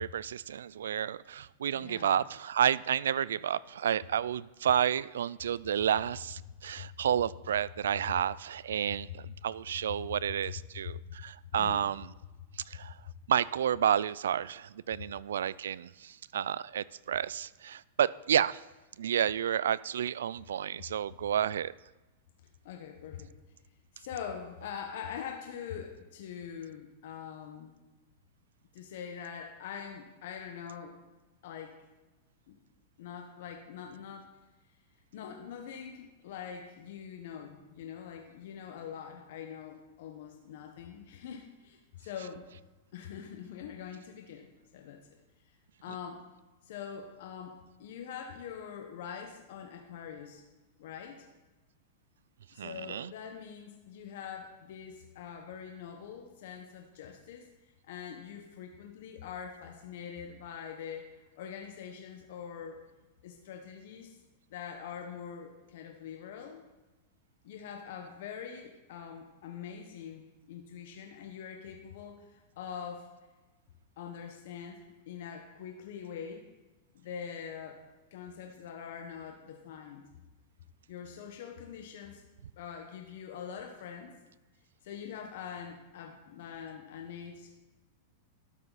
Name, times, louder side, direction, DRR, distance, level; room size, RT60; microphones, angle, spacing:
voice 1, 0.0-12.1 12.7-13.0 13.3-18.6 19.0-21.7 52.6-53.1, right 9 dB, 90° right, 21 dB, 0.3 m, -30 dB
voice 2, 1.7-2.1 6.8-6.9 11.6-11.9 12.8-12.9 22.6-23.3 23.9-27.8 28.7-31.0 31.4-31.8 32.5-32.6 33.0-34.3 35.1-42.5 42.9-44.5 44.7-45.0 45.8-46.3 46.6-50.4 50.8-51.2 52.5-57.5 57.8-62.8 63.2-64.2 64.5-66.6 67.4-73.1 74.0-76.4 76.9-77.8 78.1-80.1 80.9-82.2 82.6-84.1 84.8-87.5, left 7 dB, 65° left, 3 dB, 1.2 m, -44 dB
12.5 x 7.7 x 4.1 m, 1.1 s
hypercardioid pair, 135°, 0 cm